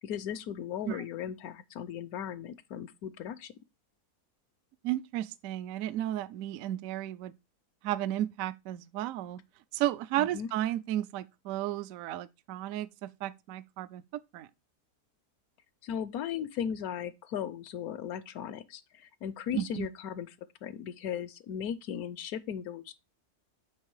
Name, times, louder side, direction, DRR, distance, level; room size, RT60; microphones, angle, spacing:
voice 1, 0.0-3.5 10.2-10.5 15.8-20.3 20.6-22.9, left 8 dB, 75° left, 1.0 m, -37 dB
voice 2, 4.8-7.3 7.8-9.4 9.7-14.0 14.3-14.5 19.5-19.9, right 13 dB, 70° right, 0.9 m, -33 dB
8.3 x 3.3 x 4.7 m
omnidirectional pair, 1.7 m